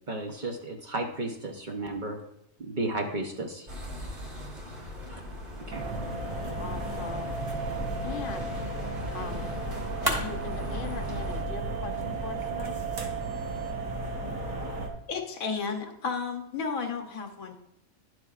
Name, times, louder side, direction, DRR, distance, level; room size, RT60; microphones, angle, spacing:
voice 1, 0.1-2.2 2.6-3.7 5.1-5.2 5.5-5.8, right 2 dB, 40° right, 3 dB, 0.8 m, -33 dB
sound 1, 3.7-11.4, equal, 55° right, 1.9 m, -40 dB
sound 2, 5.7-14.9, right 2 dB, 75° right, 1.5 m, -34 dB
voice 2, 6.6-7.4 8.0-8.7 9.1-9.6 10.0-12.8, left 5 dB, 55° left, 7 dB, 0.7 m, -41 dB
sound 3, 7.6-13.6, equal, 25° right, 1.6 m, -40 dB
voice 3, 15.1-17.5, left 5 dB, 90° left, 5 dB, 1.4 m, -32 dB
10.5 x 7.7 x 2.4 m, 0.80 s
omnidirectional pair, 1.4 m